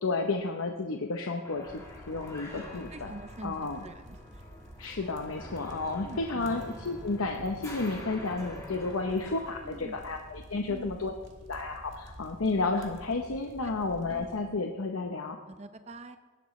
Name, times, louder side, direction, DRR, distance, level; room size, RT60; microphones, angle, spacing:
voice 1, 0.0-1.7 2.1-3.1 3.4-3.8 4.8-11.1 11.5-15.4, left 3 dB, 85° left, 3 dB, 0.8 m, -32 dB
sound 1, 1.4-9.6, left 1 dB, 15° left, 1.8 m, -47 dB
sound 2, 1.6-14.4, right 1 dB, 60° right, 1.7 m, -50 dB
voice 2, 2.5-4.4 6.0-6.4 9.6-10.0 10.7-11.0 13.6-13.7 14.1-14.3 15.5-16.2, right 2 dB, 30° right, 9 dB, 0.6 m, -45 dB
Acoustic guitar / Strum, 6.4-11.3, equal, 5° right, 2.0 m, -52 dB
17.5 x 12.0 x 3.2 m, 1.3 s
head